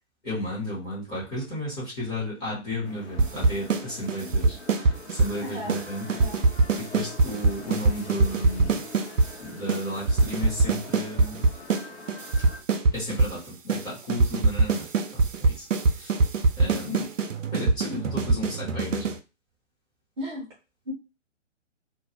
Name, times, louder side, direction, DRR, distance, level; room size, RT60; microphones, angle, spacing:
voice 1, 0.2-4.6 5.1-6.1 6.8-8.8 9.4-11.4 12.9-14.8 15.1-15.7 16.0-16.1 16.6-17.1 17.5-19.1, left 1 dB, 10° left, -8 dB, 0.8 m, -33 dB
sound 1, 2.8-12.6, left 4 dB, 60° left, 0.9 m, -44 dB
sound 2, 3.2-5.4 5.7-5.8 6.1-9.3 9.7-9.8 10.1-11.8 12.1-13.4 13.7-13.8 14.1-19.2, right 3 dB, 85° right, 0.5 m, -22 dB
voice 2, 5.4-5.8 6.1-6.4 16.7-17.1 20.2-20.5 20.8-20.9, left 3 dB, 20° right, -4 dB, 0.6 m, -35 dB
2.3 x 2.2 x 2.9 m, 0.30 s
figure-of-eight pair, 130°, 37 cm